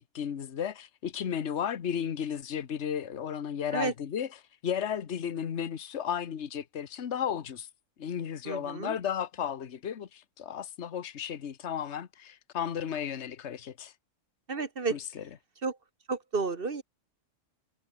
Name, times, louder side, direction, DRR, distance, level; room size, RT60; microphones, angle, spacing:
voice 1, 0.0-4.3 4.6-7.7 8.0-13.9 14.9-15.3, left 8 dB, 60° left, 1.4 m, -34 dB
voice 2, 8.4-8.9 14.5-15.0 15.6-15.8 16.1-16.8, right 4 dB, 45° right, 1.7 m, -31 dB
omnidirectional pair, 1.3 m